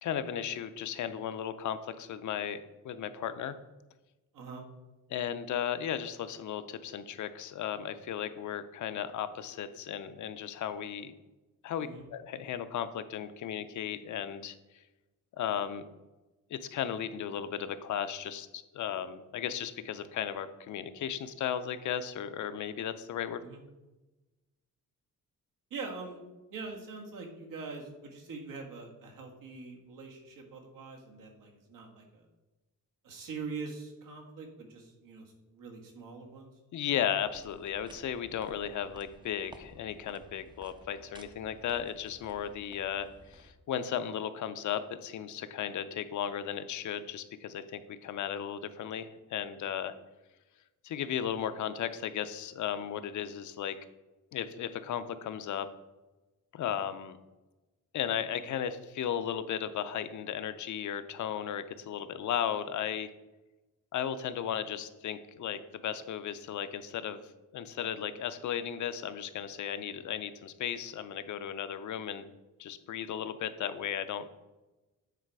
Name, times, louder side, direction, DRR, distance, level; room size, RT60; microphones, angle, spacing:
voice 1, 0.0-3.6 5.1-11.1 11.6-14.5 15.4-15.9 16.5-23.4 36.7-49.9 50.8-53.7 54.3-55.7 56.5-57.2 57.9-63.1 63.9-67.2 67.5-72.2 72.6-74.3, left 9 dB, 65° left, 11 dB, 0.6 m, -35 dB
voice 2, 25.7-26.2 26.5-32.2 33.0-35.2 35.5-36.5, right 4 dB, 80° right, 1 dB, 1.6 m, -43 dB
sound 1, 37.2-43.5, right 1 dB, 15° right, 0.4 m, -55 dB
9.1 x 4.0 x 4.7 m, 1.1 s
wide cardioid pair, 165°, 32 cm